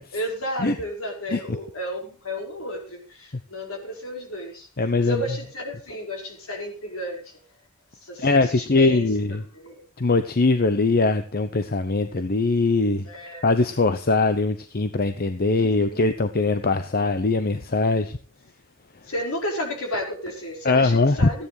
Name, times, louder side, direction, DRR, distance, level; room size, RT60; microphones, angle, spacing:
voice 1, 0.1-4.7 5.0-7.4 8.0-9.1 9.5-9.8 13.0-13.5 15.5-16.0 19.1-21.5, equal, 70° left, 1 dB, 5.1 m, -32 dB
voice 2, 4.8-5.2 8.2-9.4 10.0-13.1 13.4-18.2 20.6-21.3, left 3 dB, 45° left, 9 dB, 0.9 m, -21 dB
15.0 x 10.0 x 4.8 m, 0.38 s
head